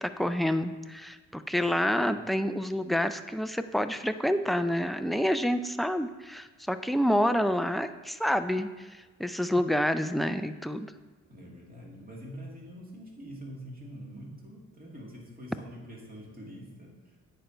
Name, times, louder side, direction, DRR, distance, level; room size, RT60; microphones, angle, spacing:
voice 1, 0.0-8.9 9.2-10.9, equal, ahead, 9 dB, 0.3 m, -28 dB
voice 2, 11.3-17.1, equal, 30° right, -2 dB, 2.2 m, -45 dB
8.7 x 4.5 x 5.2 m, 1.3 s
cardioid pair, 90°, 30 cm